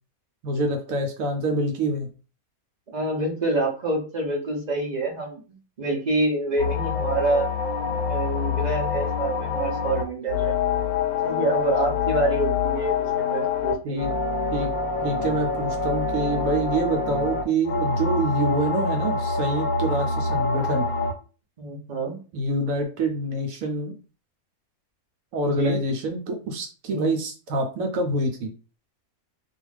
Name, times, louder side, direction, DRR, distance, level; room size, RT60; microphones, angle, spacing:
voice 1, 0.4-2.1 13.8-14.1 14.5-14.7 15.0-20.9 22.3-23.9 25.3-28.5, right 1 dB, 70° right, 3 dB, 0.9 m, -26 dB
voice 2, 2.9-7.5 7.9-10.5 11.2-14.0 21.6-22.2 25.4-25.8 26.9-27.1, right 2 dB, 50° right, 1 dB, 0.5 m, -27 dB
sound 1, 6.6-21.1, left 4 dB, 85° left, 1.1 m, -26 dB
2.4 x 2.4 x 3.2 m, 0.35 s
omnidirectional pair, 1.5 m